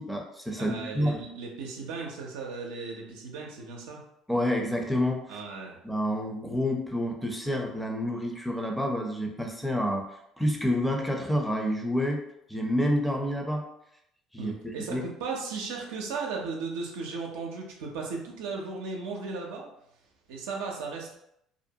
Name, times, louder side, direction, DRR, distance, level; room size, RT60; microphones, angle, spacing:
voice 1, 0.0-1.2 4.3-5.4 5.8-12.2 12.5-13.7 14.3-15.0, equal, ahead, 2 dB, 0.6 m, -29 dB
voice 2, 0.6-4.0 5.3-5.8 14.4-19.7 20.3-21.2, right 4 dB, 85° right, -1 dB, 0.5 m, -36 dB
2.5 x 2.1 x 2.7 m, 0.76 s
supercardioid pair, 80°, 0 cm